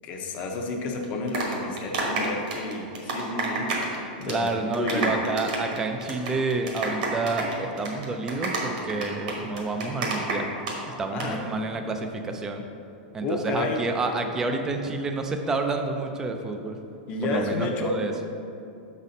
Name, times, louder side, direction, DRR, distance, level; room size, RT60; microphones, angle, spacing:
voice 1, 0.0-3.7 4.2-4.5 4.8-5.1 11.1-11.4 13.2-13.8 17.1-18.0, left 2 dB, 25° left, 2 dB, 0.7 m, -30 dB
sound 1, 1.0-4.0 4.2-4.5 4.7-10.7 11.0-11.3, right 3 dB, 55° right, 1.3 m, -29 dB
voice 2, 4.2-10.5 10.9-12.6 13.1-16.8 17.2-18.1, right 3 dB, 10° right, 5 dB, 0.4 m, -29 dB
6.0 x 4.2 x 5.2 m, 2.7 s
supercardioid pair, 165°, 5 cm